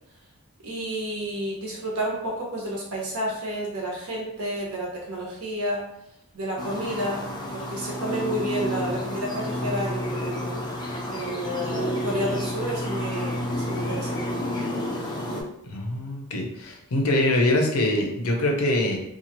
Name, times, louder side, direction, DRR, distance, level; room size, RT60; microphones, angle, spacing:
voice 1, 0.6-5.8 6.3-7.3 7.5-10.6 11.1-14.4, equal, 75° right, -3 dB, 1.0 m, -30 dB
sound 1, 6.6-15.4, equal, 20° left, 0.4 m, -30 dB
voice 2, 15.7-19.0, left 1 dB, 75° left, 1 dB, 0.6 m, -23 dB
2.8 x 2.4 x 2.9 m, 0.78 s
head